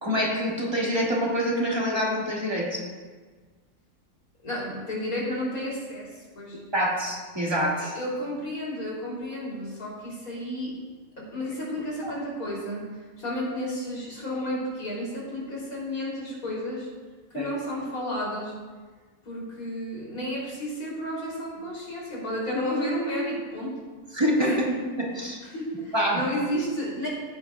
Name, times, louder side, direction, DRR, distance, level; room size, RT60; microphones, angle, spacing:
voice 1, 0.0-2.8 6.7-7.9 12.0-12.1 17.3-17.5 24.1-24.5 25.0-25.4 25.9-26.2, equal, 20° right, -4 dB, 2.0 m, -26 dB
voice 2, 4.4-6.6 7.8-10.7 11.2-12.8 13.2-16.9 17.3-18.5 19.3-23.8 24.4-24.7 25.2-27.1, equal, 90° left, -5 dB, 3.7 m, -32 dB
15.0 x 9.4 x 2.4 m, 1.4 s
omnidirectional pair, 1.5 m